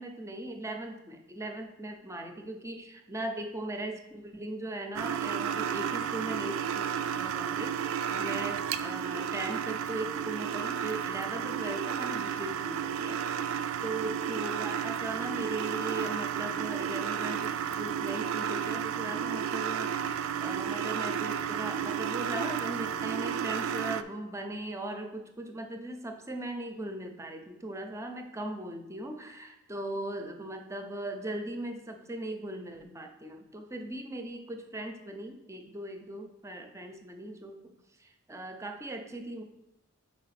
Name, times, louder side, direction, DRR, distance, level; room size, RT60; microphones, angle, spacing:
voice 1, 0.0-6.9 7.1-37.7 38.0-39.4, right 1 dB, 15° right, 5 dB, 0.6 m, -39 dB
sound 1, 4.9-24.0, right 8 dB, 75° right, 0.3 m, -32 dB
4.8 x 4.3 x 5.8 m, 0.91 s
head